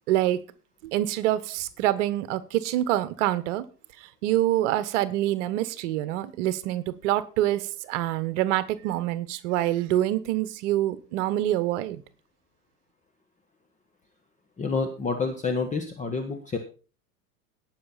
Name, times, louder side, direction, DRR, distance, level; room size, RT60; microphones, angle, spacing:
voice 1, 0.1-0.4 0.8-3.6 4.2-12.0, right 14 dB, 50° right, 15 dB, 1.3 m, -26 dB
voice 2, 14.6-16.6, left 4 dB, 15° left, 5 dB, 1.5 m, -28 dB
18.5 x 6.2 x 4.2 m, 0.35 s
figure-of-eight pair, 90°, 47 cm